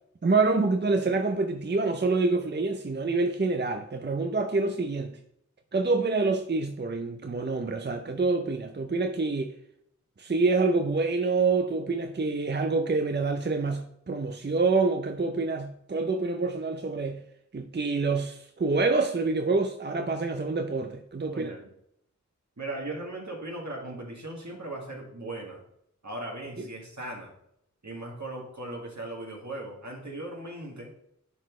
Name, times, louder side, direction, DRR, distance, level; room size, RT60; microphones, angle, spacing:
voice 1, 0.2-5.2 5.7-9.5 10.2-17.2 17.5-21.5 26.6-26.7, right 3 dB, 35° right, 0.5 m, -27 dB
voice 2, 21.3-21.7 22.6-25.6 26.0-27.3 27.8-30.9, right 2 dB, 70° right, 2.0 m, -38 dB
10.5 x 4.1 x 3.1 m
wide cardioid pair, 45°, 30 cm